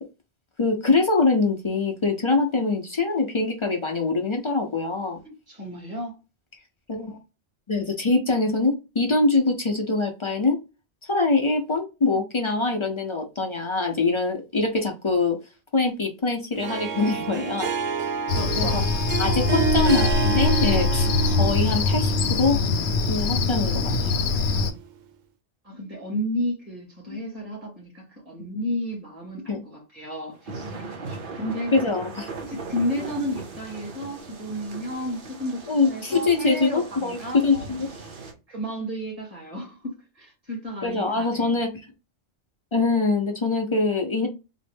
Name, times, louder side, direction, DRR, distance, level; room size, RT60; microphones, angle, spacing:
voice 1, 0.6-5.2 6.9-7.2 7.7-10.6 11.1-15.4 15.7-17.7 18.6-18.8 19.2-22.6 23.1-23.8 27.1-27.2 29.5-29.6 31.7-32.3 35.7-37.9 40.8-41.7 42.7-44.3, left 3 dB, 40° left, 0.4 m, -23 dB
voice 2, 5.2-6.1 18.3-19.0 25.6-31.7 32.4-37.6 38.5-41.6, equal, 30° right, 2.2 m, -32 dB
Harp, 16.5-24.8, right 7 dB, 80° right, 0.9 m, -29 dB
Cricket, 18.3-24.7, left 4 dB, 70° left, 0.8 m, -23 dB
sound 1, 30.3-38.3, right 4 dB, 50° right, 0.9 m, -39 dB
4.0 x 2.0 x 3.3 m
omnidirectional pair, 1.2 m